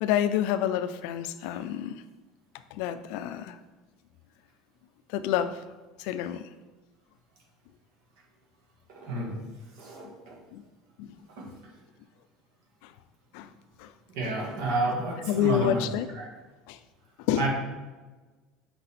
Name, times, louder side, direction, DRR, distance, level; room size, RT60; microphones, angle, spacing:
voice 1, 0.0-2.0 2.7-3.6 5.1-5.6 6.0-6.4 9.3-9.4 10.0-10.1 10.5-10.6 11.0-11.1 12.8-12.9 13.3-13.5 13.8-13.9 14.2-14.3 14.9-15.0 15.3-16.1 16.7-16.8 17.3-17.5, left 11 dB, 70° left, 12 dB, 0.4 m, -28 dB
voice 2, 9.0-9.3 9.8-10.1 14.2-15.8 16.2-16.3 17.4-17.5, right 2 dB, 70° right, -1 dB, 1.7 m, -29 dB
6.0 x 4.0 x 4.2 m, 1.2 s
cardioid pair, 150°, 0 cm